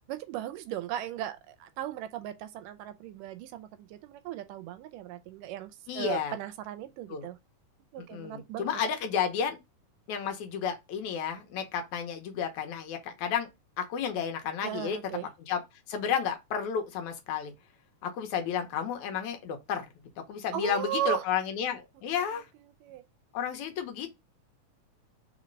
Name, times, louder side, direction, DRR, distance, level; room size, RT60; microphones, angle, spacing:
voice 1, 0.1-7.4 7.9-8.8 14.6-15.3 20.5-21.3 22.1-22.2 22.8-23.0, right 12 dB, 85° right, 2.2 m, -37 dB
voice 2, 5.9-6.4 7.1-7.3 8.0-9.6 10.1-13.5 13.8-15.0 15.5-15.6 15.9-17.5 18.0-19.9 20.3-22.5 23.3-24.1, left 7 dB, 70° left, 2.1 m, -32 dB
4.6 x 4.3 x 5.1 m
omnidirectional pair, 3.8 m